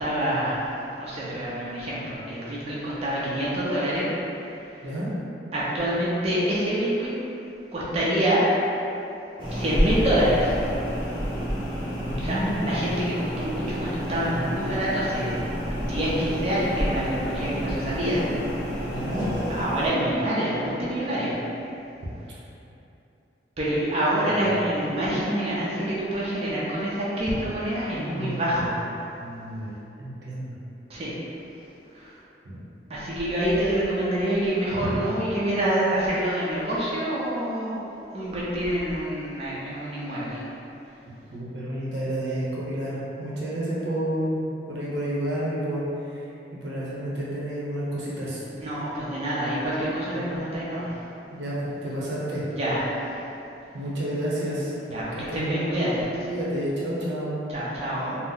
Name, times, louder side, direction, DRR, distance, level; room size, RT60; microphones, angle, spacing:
voice 1, 0.0-4.1 4.7-4.9 5.5-7.1 7.7-8.5 9.5-10.6 12.2-15.4 15.7-18.2 18.8-18.9 19.5-21.4 23.6-28.8 30.9-31.1 31.9-32.1 32.9-37.9 38.1-40.4 48.6-51.0 52.5-53.2 54.9-56.0 57.5-58.2, right 1 dB, 35° right, -8 dB, 0.5 m, -26 dB
sound 1, 9.4-19.9, equal, 30° left, 0.6 m, -29 dB
voice 2, 12.1-12.7 18.9-19.2 24.2-24.4 28.1-28.7 29.2-29.7 30.0-30.6 32.4-32.6 34.8-35.0 41.3-46.2 46.5-48.4 50.1-50.3 51.3-52.5 53.7-54.7 55.3-55.9 56.2-57.4, right 1 dB, 85° right, -6 dB, 0.7 m, -30 dB
2.7 x 2.0 x 3.8 m, 2.8 s
head